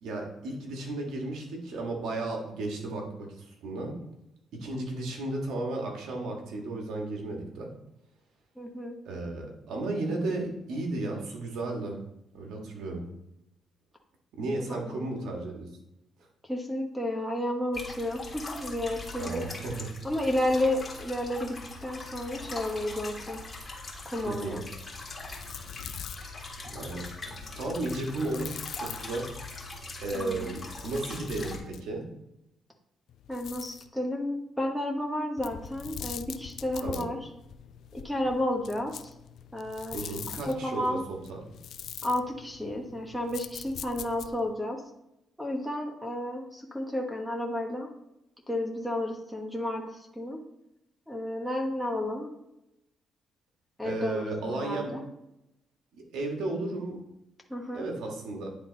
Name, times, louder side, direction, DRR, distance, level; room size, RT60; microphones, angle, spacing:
voice 1, 0.0-3.9 4.6-7.7 9.0-12.0 12.3-13.0 14.4-15.7 19.2-19.7 24.2-24.6 26.6-27.1 27.5-29.3 30.0-32.0 36.8-37.1 39.9-41.4 53.8-54.9 55.9-57.0 57.7-58.5, right 2 dB, 80° right, 1 dB, 1.7 m, -34 dB
voice 2, 8.6-9.0 14.7-15.1 16.5-19.4 20.0-21.6 21.8-23.4 24.0-24.6 30.1-30.6 33.3-37.2 37.9-39.1 39.5-40.1 40.4-41.0 42.0-44.8 45.4-47.9 48.5-49.8 50.1-50.4 51.1-52.3 53.8-55.0 57.5-57.9, left 1 dB, ahead, 2 dB, 1.4 m, -32 dB
sound 1, 17.7-31.6, left 3 dB, 30° left, 1.8 m, -41 dB
sound 2, 25.0-29.5 30.3-32.0 33.1-33.9 35.4-44.5, left 9 dB, 70° left, 0.3 m, -44 dB
9.6 x 3.8 x 4.1 m, 0.87 s
cardioid pair, 90°, 0 cm